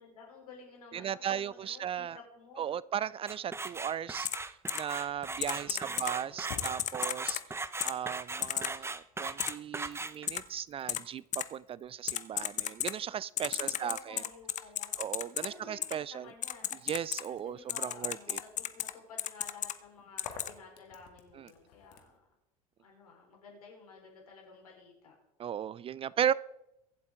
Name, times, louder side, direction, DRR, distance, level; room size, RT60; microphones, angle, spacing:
voice 1, 0.0-2.7 5.5-6.5 13.4-16.8 17.3-22.2 22.8-25.1, left 4 dB, 85° left, 4.4 m, -53 dB
voice 2, 0.9-2.2 2.6-4.3 4.7-7.4 7.8-14.2 15.0-16.3 16.8-18.4 21.4-21.5 25.4-26.3, right 9 dB, 30° right, 0.4 m, -36 dB
sound 1, 3.3-10.4, right 3 dB, 15° right, 0.8 m, -38 dB
Typing, 4.2-4.4 4.7-4.8 5.4-6.1 6.6-7.4 7.8-7.9 8.4-8.7 9.4-9.5 10.3-10.4 10.9-11.0 11.3-11.4 12.1-12.9 13.4-15.5 15.8-15.9 16.4-17.2 17.7-18.9 19.2-19.7 20.2-20.5, left 11 dB, 40° left, 0.9 m, -33 dB
sound 2, 5.9-8.6 8.9-22.2, left 6 dB, 65° left, 2.0 m, -55 dB
23.5 x 7.9 x 3.7 m
hypercardioid pair, 70°, 19 cm